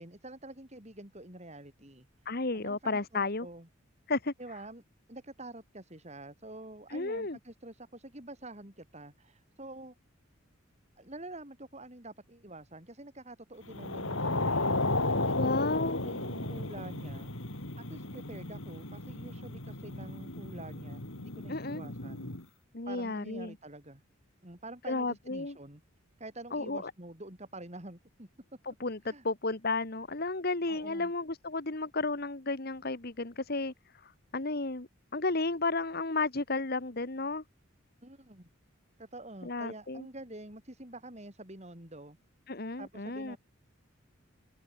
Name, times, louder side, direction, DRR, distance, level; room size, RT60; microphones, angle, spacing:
voice 1, 0.0-2.1 2.5-3.7 4.4-4.8 5.1-10.0 11.0-14.7 15.1-17.3 17.8-22.3 22.9-24.0 24.4-25.8 26.2-28.3 29.0-29.2 30.7-31.1 38.0-38.5 39.0-42.2 42.8-43.4, right 2 dB, 30° right, 3.7 m, -47 dB
voice 2, 2.2-3.5 4.1-4.3 6.9-7.4 15.4-16.0 21.5-21.9 22.7-23.5 24.9-25.6 26.5-26.9 28.8-33.7 34.0-37.4 39.4-40.0 42.5-43.4, left 3 dB, 45° left, 1.5 m, -33 dB
sound 1, 13.7-22.4, left 2 dB, 70° left, 3.8 m, -34 dB
head